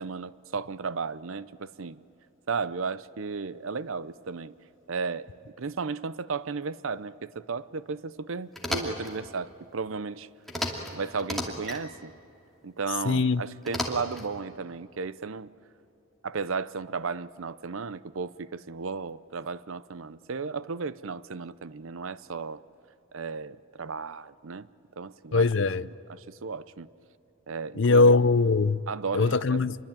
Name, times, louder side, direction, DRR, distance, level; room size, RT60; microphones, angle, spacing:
voice 1, 0.0-2.0 2.5-4.5 4.9-5.3 5.6-10.3 10.9-12.1 12.6-15.5 16.2-22.6 23.1-24.7 25.0-25.5 26.1-26.9 27.5-28.1 28.9-29.6, right 5 dB, 75° right, 0.7 m, -34 dB
sound 1, 8.5-9.1 10.5-10.9 11.2-11.8 13.6-14.3, left 1 dB, ahead, 2.5 m, -32 dB
voice 2, 13.1-13.4 25.3-25.8 27.8-28.8 29.1-29.8, left 3 dB, 60° left, 0.6 m, -21 dB
27.5 x 22.5 x 8.9 m
head